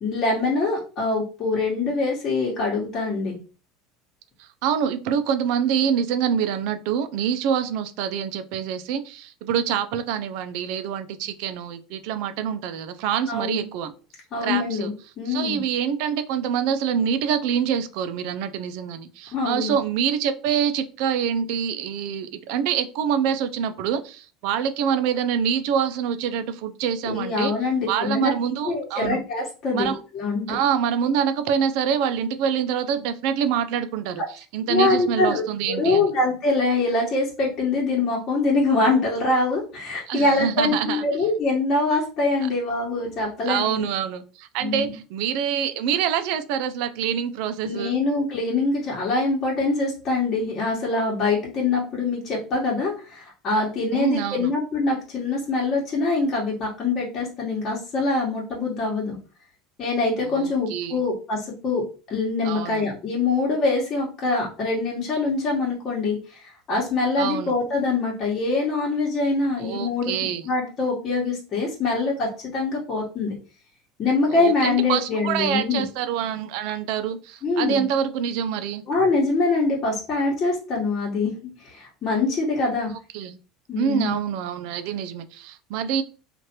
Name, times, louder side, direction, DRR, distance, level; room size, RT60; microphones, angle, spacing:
voice 1, 0.0-3.4 13.3-13.6 14.3-15.6 19.3-19.7 27.0-28.3 28.6-30.6 34.7-43.8 44.6-44.9 47.6-59.2 59.8-70.1 70.4-73.3 74.0-75.8 77.4-77.8 78.9-81.3 81.6-82.9 83.7-84.1, left 3 dB, 45° left, -4 dB, 1.2 m, -24 dB
voice 2, 4.4-13.9 14.4-14.9 15.3-27.5 27.9-29.2 29.7-30.0 30.5-36.0 40.1-41.0 43.5-48.0 53.9-54.5 60.2-61.0 62.4-62.9 67.2-67.5 69.6-70.5 74.3-78.8 83.1-83.4 83.8-86.0, right 8 dB, 70° right, 10 dB, 0.4 m, -26 dB
3.1 x 2.5 x 2.8 m, 0.35 s
supercardioid pair, 100°, 0 cm